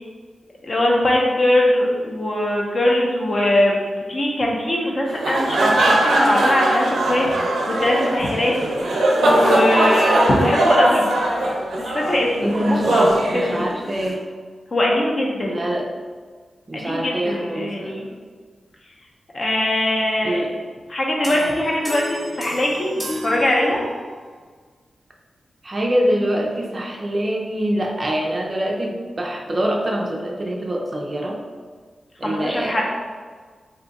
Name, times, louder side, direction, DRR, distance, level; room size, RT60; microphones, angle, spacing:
voice 1, 0.6-8.5 8.8-11.1 11.8-13.7 14.7-15.6 16.7-18.1 19.3-20.4 20.9-23.8 32.2-32.8, left 1 dB, 40° left, -2 dB, 0.6 m, -21 dB
sound 1, 5.1-14.1, right 1 dB, 85° right, 0.5 m, -20 dB
voice 2, 12.4-13.0 13.3-14.2 15.5-15.9 16.7-17.9 20.2-20.5 25.6-31.4 32.2-32.8, equal, 30° right, 0 dB, 0.4 m, -24 dB
sound 2, 21.2-24.2, equal, 5° right, 0.8 m, -33 dB
2.6 x 2.2 x 3.9 m, 1.5 s
wide cardioid pair, 100°, 0 cm